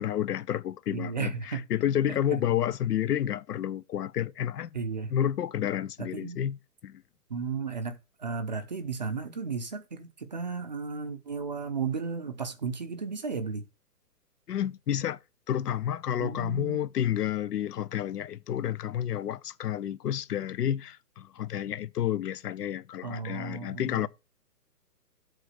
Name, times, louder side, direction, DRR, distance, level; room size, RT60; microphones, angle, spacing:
voice 1, 0.0-4.8 5.1-6.6 6.8-7.0 14.5-15.2 15.5-24.1, left 10 dB, 75° left, 0.7 m, -30 dB
voice 2, 0.9-1.7 2.1-2.4 4.7-5.1 6.0-6.4 7.3-13.7 16.2-16.8 23.0-24.1, right 5 dB, 30° right, 0.5 m, -34 dB
8.1 x 3.8 x 6.4 m
hypercardioid pair, 160°, 47 cm